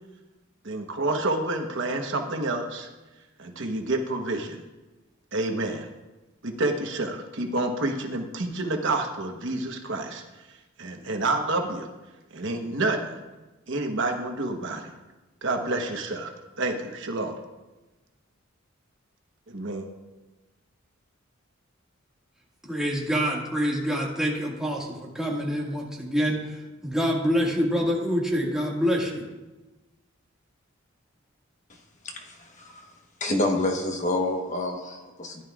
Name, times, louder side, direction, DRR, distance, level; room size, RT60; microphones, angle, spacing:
voice 1, 0.6-2.9 3.4-4.6 5.3-5.9 6.4-10.2 10.8-11.9 12.3-13.2 13.7-14.9 15.4-16.3 16.6-17.4 19.5-19.9, right 2 dB, 65° right, 3 dB, 1.1 m, -28 dB
voice 2, 22.6-29.3, equal, 5° right, -4 dB, 1.9 m, -26 dB
voice 3, 32.0-32.9 33.2-35.4, left 2 dB, 35° left, 3 dB, 1.1 m, -28 dB
15.5 x 11.0 x 2.4 m, 1.1 s
head